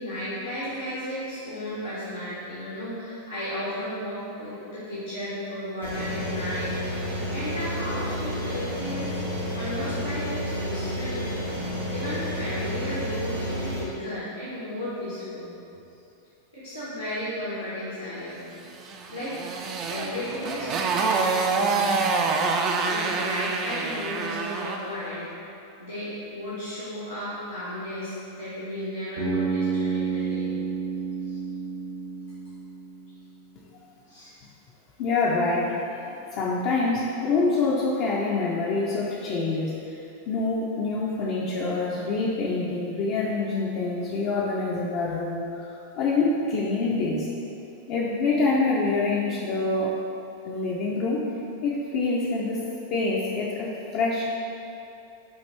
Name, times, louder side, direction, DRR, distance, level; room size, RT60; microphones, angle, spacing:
voice 1, 0.0-11.3 11.9-15.5 16.5-18.4 18.9-19.3 19.9-25.2 25.8-30.5 31.2-31.4 34.1-34.3, left 1 dB, 85° left, -11 dB, 1.0 m, -34 dB
sound 1, 5.8-13.8, equal, 85° right, 1.3 m, -30 dB
Motorcycle, 18.8-24.9, right 4 dB, 30° right, 0.3 m, -26 dB
Bass guitar, 29.2-33.2, right 5 dB, 65° right, 1.0 m, -30 dB
voice 2, 35.0-40.0 40.3-45.7 46.0-47.3 47.9-50.0 50.4-51.2 51.6-52.6 52.9-54.2, left 3 dB, 45° left, -5 dB, 0.4 m, -26 dB
6.2 x 2.5 x 3.0 m, 2.7 s
figure-of-eight pair, 90°, 0 cm